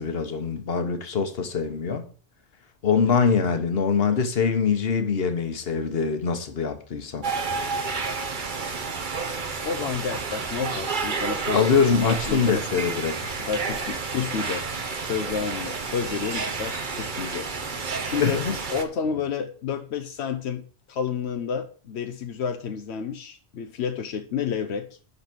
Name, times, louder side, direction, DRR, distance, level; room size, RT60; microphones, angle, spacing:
voice 1, 0.0-2.0 2.8-7.3 11.5-13.3 18.2-18.6, left 6 dB, 65° left, 1.3 m, -23 dB
sound 1, 7.2-18.8, right 4 dB, 50° right, 1.1 m, -30 dB
voice 2, 9.6-17.5 17.8-18.5 18.7-20.6 20.9-24.9, left 7 dB, 85° left, 1.0 m, -30 dB
11.0 x 4.0 x 6.1 m
omnidirectional pair, 1.1 m